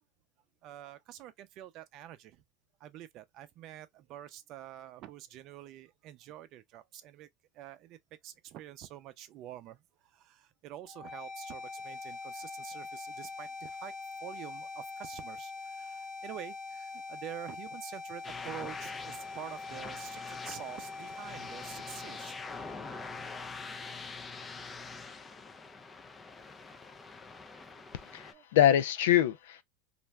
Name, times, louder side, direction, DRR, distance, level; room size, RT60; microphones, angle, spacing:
voice 1, 0.6-2.4 2.8-7.3 7.5-8.0 8.2-13.9 14.2-22.3 23.5-23.6 24.1-24.5 26.4-27.0 28.3-28.4, right 12 dB, 50° right, 0.5 m, -47 dB
sound 1, 10.9-24.8, left 4 dB, 40° left, 1.0 m, -44 dB
sound 2, 18.2-28.3, left 4 dB, 20° left, 0.4 m, -45 dB
voice 2, 28.1-29.6, left 11 dB, 80° left, 0.5 m, -24 dB
2.5 x 2.2 x 3.1 m
supercardioid pair, 120°, 0 cm